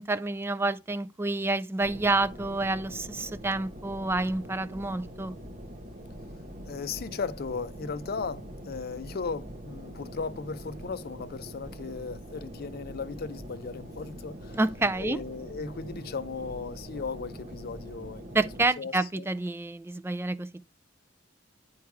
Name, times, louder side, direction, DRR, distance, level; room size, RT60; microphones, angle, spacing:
voice 1, 0.0-5.4 14.5-15.2 18.3-20.5, right 2 dB, 10° right, 0.3 m, -28 dB
sound 1, 1.8-18.7, equal, 40° right, 1.1 m, -43 dB
voice 2, 6.6-14.6 14.9-18.5 18.8-19.3, left 4 dB, 50° left, 0.5 m, -36 dB
8.6 x 4.6 x 4.7 m
head